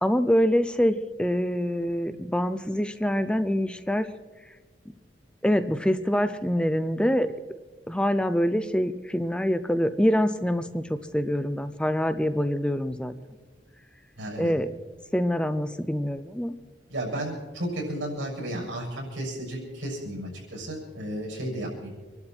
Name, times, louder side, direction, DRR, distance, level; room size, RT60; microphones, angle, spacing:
voice 1, 0.0-4.1 5.4-7.3 7.9-13.1 14.4-14.7 15.1-16.5, equal, 5° left, 10 dB, 0.5 m, -25 dB
voice 2, 14.2-14.5 16.9-21.9, right 1 dB, 85° right, -3 dB, 6.6 m, -33 dB
26.0 x 11.5 x 4.4 m, 1.3 s
head